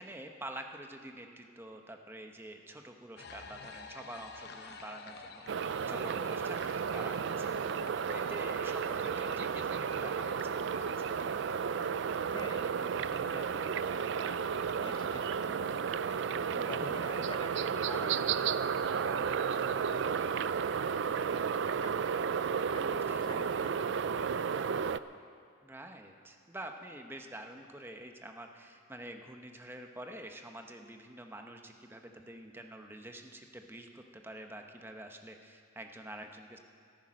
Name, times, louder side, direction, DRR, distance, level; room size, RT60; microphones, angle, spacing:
voice 1, 0.0-5.4 5.9-7.5 8.1-11.1 16.8-17.0 23.1-23.3 25.6-36.6, right 1 dB, 10° right, 4 dB, 0.9 m, -47 dB
sound 1, 3.2-20.3, left 3 dB, 55° left, 0.9 m, -52 dB
sound 2, 5.5-25.0, right 6 dB, 60° right, 0.4 m, -33 dB
voice 2, 12.3-22.3 22.7-24.8, left 2 dB, 25° left, 5 dB, 0.8 m, -49 dB
14.0 x 13.0 x 6.3 m, 2.3 s
head